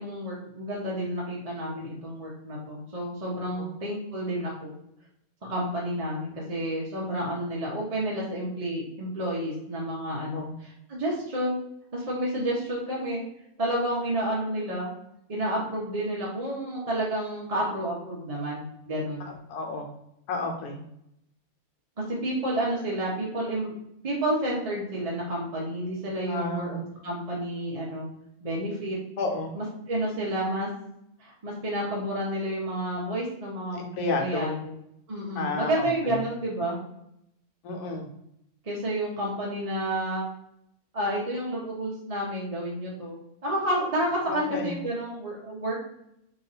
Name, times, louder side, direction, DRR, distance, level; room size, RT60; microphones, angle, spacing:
voice 1, 0.0-4.7 5.4-10.5 10.9-11.6 11.9-13.2 13.6-14.9 15.3-19.3 22.1-23.7 24.0-28.1 28.4-29.0 29.5-30.7 31.2-34.7 35.1-36.8 38.6-40.2 40.9-45.8, right 1 dB, 35° right, -5 dB, 0.7 m, -30 dB
voice 2, 19.2-19.9 20.3-20.8 26.3-26.8 29.2-29.5 33.8-34.6 35.3-36.2 37.6-38.1 44.3-44.8, left 3 dB, 85° left, 2 dB, 1.3 m, -31 dB
3.0 x 2.6 x 4.0 m, 0.77 s
omnidirectional pair, 1.6 m